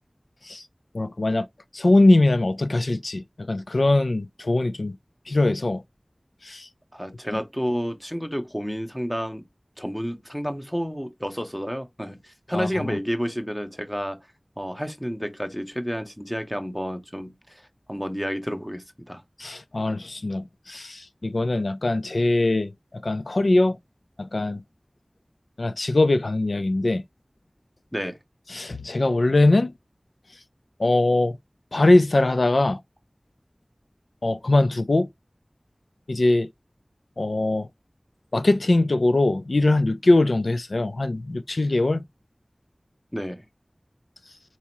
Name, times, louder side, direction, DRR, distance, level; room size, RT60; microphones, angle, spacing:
voice 1, 0.9-1.5 1.7-4.9 5.3-5.8 6.4-6.7 7.3-7.4 12.5-13.0 19.4-23.8 24.2-24.6 25.6-27.0 28.5-29.7 30.8-31.4 31.7-32.8 34.2-35.1 36.1-36.5 37.2-37.7 38.3-42.0, left 2 dB, 90° left, 0.5 m, -21 dB
voice 2, 6.9-9.4 9.8-14.2 14.6-17.6 17.9-19.2 27.9-28.2 43.1-43.5, equal, 5° left, 1.1 m, -30 dB
4.4 x 3.5 x 2.9 m
wide cardioid pair, 45°, 0 cm